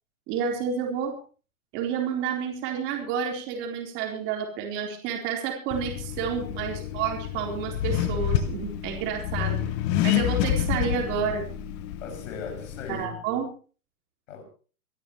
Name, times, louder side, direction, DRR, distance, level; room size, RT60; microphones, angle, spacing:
voice 1, 0.3-1.2 1.7-9.7 10.0-11.4 12.9-13.5, right 7 dB, 25° right, 4.1 m, -30 dB
Accelerating revving vroom, 5.7-13.0, left 11 dB, 20° left, 0.8 m, -29 dB
voice 2, 9.4-9.7 12.0-13.3 14.3-14.4, left 5 dB, 55° left, 6.5 m, -39 dB
25.0 x 12.5 x 3.2 m
hypercardioid pair, 165°, 44 cm